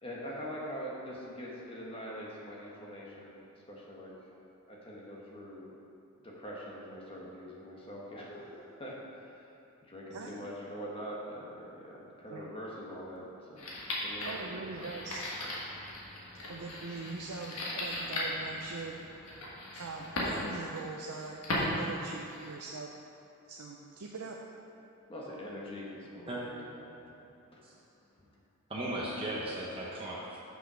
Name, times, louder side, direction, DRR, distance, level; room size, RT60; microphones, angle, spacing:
voice 1, 0.0-3.4 3.7-4.1 4.7-5.7 6.2-9.5 9.9-13.6 14.0-14.5 14.7-14.8 25.1-27.6, equal, 25° left, -4 dB, 1.2 m, -43 dB
sound 1, 13.6-22.6, left 1 dB, 75° left, 1.6 m, -38 dB
voice 2, 14.2-15.2 16.5-18.9 19.7-22.9 23.5-24.4, right 3 dB, 85° right, 0 dB, 0.6 m, -42 dB
voice 3, 28.7-30.4, right 1 dB, 25° right, -6 dB, 0.8 m, -36 dB
6.2 x 5.6 x 6.1 m, 2.8 s
head